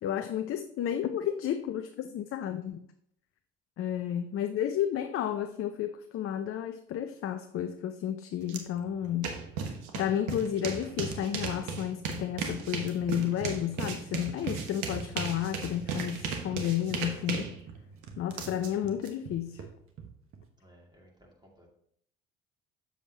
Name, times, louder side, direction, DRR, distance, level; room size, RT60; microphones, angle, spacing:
voice 1, 0.0-2.8 3.8-9.3 9.9-17.5 18.2-19.7, left 10 dB, 45° left, 8 dB, 0.6 m, -32 dB
voice 2, 3.8-4.2 17.8-18.2 20.6-21.7, equal, 15° right, -1 dB, 2.4 m, -60 dB
sound 1, 8.5-8.6 8.9-19.1, right 5 dB, 70° right, 1.1 m, -36 dB
sound 2, 12.7-14.3 14.6-15.9 16.1-20.5, right 7 dB, 45° right, 1.4 m, -46 dB
7.2 x 7.1 x 2.9 m, 0.69 s
hypercardioid pair, 60°, 31 cm